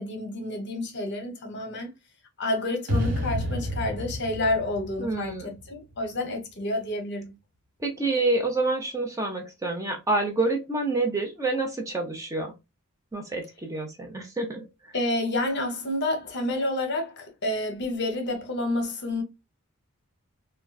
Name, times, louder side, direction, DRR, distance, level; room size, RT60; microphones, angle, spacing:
voice 1, 0.0-1.9 2.4-7.3 14.9-19.2, left 1 dB, 50° left, 0.8 m, -29 dB
sound 1, 2.9-6.1, equal, 90° right, 1.2 m, -30 dB
voice 2, 5.0-5.5 7.8-12.5 13.1-14.9, right 2 dB, 15° right, 0.7 m, -28 dB
3.7 x 2.3 x 2.2 m
head